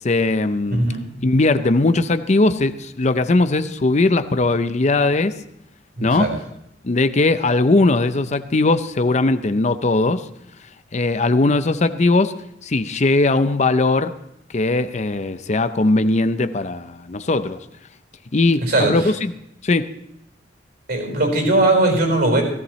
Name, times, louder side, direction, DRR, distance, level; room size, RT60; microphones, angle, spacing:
voice 1, 0.0-0.8 1.2-5.4 6.0-6.3 6.8-10.2 10.9-12.3 12.6-14.1 14.5-17.6 18.3-19.3 19.6-19.9, left 2 dB, 40° left, 0.6 m, -19 dB
voice 2, 0.7-1.1 6.0-6.3 18.6-19.1 20.9-22.4, right 2 dB, 60° right, 4.8 m, -19 dB
16.5 x 16.0 x 3.2 m
head